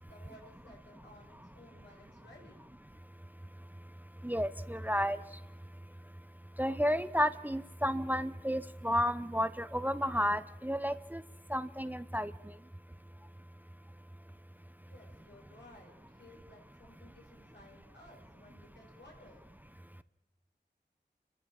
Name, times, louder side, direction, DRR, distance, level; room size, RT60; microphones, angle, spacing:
voice 1, 0.0-2.6 14.8-19.5, left 1 dB, 80° left, -1 dB, 6.0 m, -57 dB
voice 2, 4.2-5.2 6.6-11.2 11.5-12.3, equal, 10° right, 14 dB, 0.6 m, -32 dB
29.5 x 13.5 x 7.5 m, 1.0 s
wide cardioid pair, 65°, 18 cm